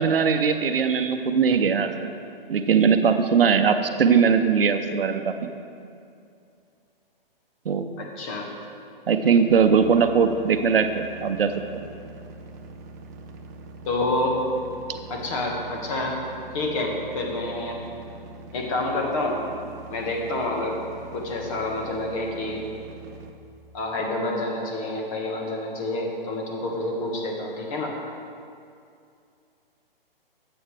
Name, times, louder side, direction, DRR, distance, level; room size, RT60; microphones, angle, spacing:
voice 1, 0.0-2.0 2.5-5.5 7.6-7.9 9.1-11.6, right 6 dB, 70° right, 8 dB, 0.8 m, -20 dB
voice 2, 8.0-8.5 13.8-14.4 15.1-16.2 16.5-17.8 18.5-19.4 19.9-20.8 21.1-22.6 23.7-27.9, left 2 dB, 35° left, 0 dB, 1.6 m, -28 dB
sound 1, 9.5-23.3, right 3 dB, 20° right, 0.4 m, -43 dB
12.5 x 7.9 x 3.3 m, 2.5 s
hypercardioid pair, 135°, 30 cm